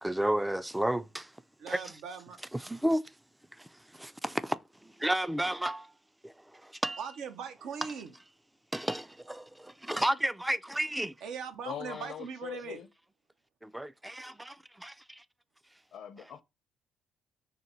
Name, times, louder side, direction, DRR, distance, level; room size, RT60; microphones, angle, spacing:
voice 1, 0.0-1.3 1.7-1.9 2.5-3.0 3.6-5.9 6.2-7.0 8.7-11.1 13.6-15.2, right 1 dB, 10° right, 0.3 m, -32 dB
voice 2, 1.6-2.4 7.0-8.1 11.2-12.8, right 6 dB, 80° right, 0.7 m, -40 dB
voice 3, 11.6-12.9 15.9-16.4, left 8 dB, 70° left, 0.6 m, -41 dB
3.9 x 2.2 x 4.2 m
cardioid pair, 90°, 0 cm